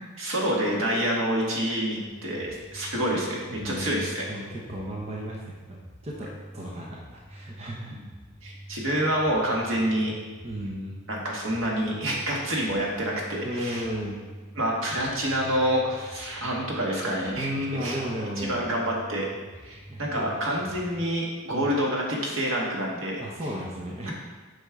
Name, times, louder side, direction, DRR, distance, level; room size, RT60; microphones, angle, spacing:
voice 1, 0.2-4.3 7.9-8.0 8.4-10.1 11.1-13.8 14.6-17.5 17.8-18.0 18.4-19.3 19.6-23.2, equal, 70° right, -3 dB, 1.7 m, -27 dB
sound 1, 2.0-21.1, right 1 dB, 15° left, 2.0 m, -46 dB
voice 2, 3.6-4.0 4.3-5.8 6.0-8.0 8.7-8.8 10.4-11.0 13.4-14.2 17.4-18.6 19.9-20.4 21.5-21.8 23.2-24.1, equal, 30° right, -3 dB, 0.8 m, -34 dB
8.4 x 5.3 x 3.6 m, 1.4 s
head